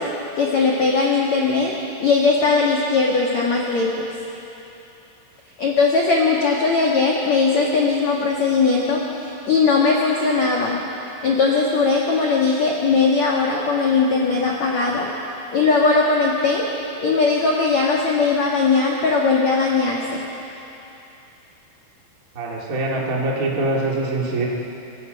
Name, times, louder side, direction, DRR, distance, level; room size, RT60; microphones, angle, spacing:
voice 1, 0.0-4.1 5.6-10.8 11.2-15.1 15.5-16.6 17.0-20.2, left 4 dB, 70° left, -3 dB, 1.7 m, -19 dB
voice 2, 22.3-24.4, right 2 dB, 25° right, -3 dB, 1.8 m, -23 dB
25.0 x 22.0 x 5.5 m, 2.9 s
omnidirectional pair, 5.9 m